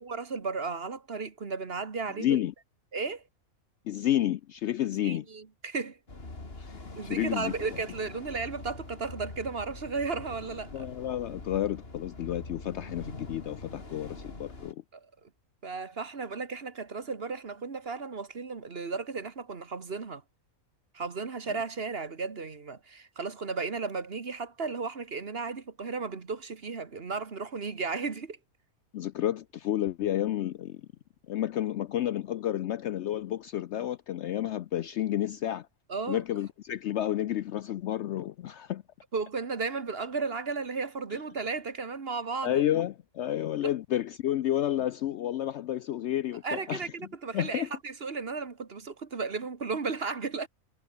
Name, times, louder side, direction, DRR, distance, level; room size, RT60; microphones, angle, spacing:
voice 1, 0.0-2.4 2.9-3.2 5.0-6.0 6.9-10.9 14.9-15.0 15.6-20.2 20.9-28.4 35.9-36.2 39.1-42.6 46.4-50.5, right 4 dB, 45° right, 1.7 m, -34 dB
voice 2, 2.2-2.5 3.9-5.2 6.6-7.5 10.7-14.8 28.9-30.8 31.3-35.7 36.1-38.8 42.4-46.9 47.3-47.7, left 12 dB, 65° left, 0.7 m, -30 dB
sound 1, 6.1-14.7, left 2 dB, 45° left, 3.5 m, -44 dB
omnidirectional pair, 1.5 m